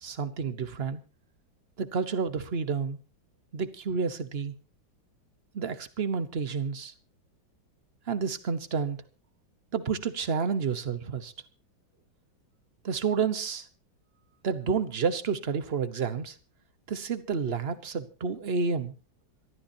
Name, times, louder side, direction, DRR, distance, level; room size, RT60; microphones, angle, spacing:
voice 1, 0.0-1.0 1.8-3.0 3.5-4.5 5.5-6.9 8.1-9.0 9.7-11.3 12.8-13.7 14.4-16.3 16.9-18.9, right 5 dB, 40° right, 12 dB, 1.1 m, -30 dB
26.0 x 13.5 x 2.8 m, 0.32 s
omnidirectional pair, 2.1 m